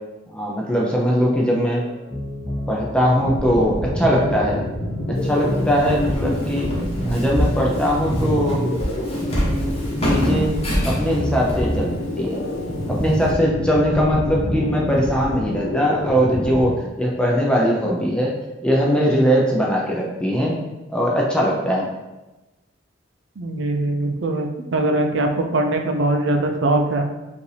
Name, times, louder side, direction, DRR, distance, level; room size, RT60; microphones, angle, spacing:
voice 1, 0.3-1.8 2.7-4.6 5.2-6.7 7.0-8.6 9.4-9.7 10.0-10.5 10.8-12.4 12.9-16.7 17.0-18.3 18.6-20.6 20.9-21.9, equal, 5° left, -3 dB, 0.5 m, -20 dB
sound 1, 1.4-15.7, equal, 20° right, 1.2 m, -31 dB
sound 2, 3.1-16.7, left 1 dB, 85° left, 0.9 m, -28 dB
Walk footsteps, 5.1-13.3, equal, 30° left, 1.0 m, -28 dB
voice 2, 23.4-27.0, right 2 dB, 65° right, 4 dB, 0.5 m, -21 dB
5.0 x 2.6 x 3.3 m, 1.1 s
head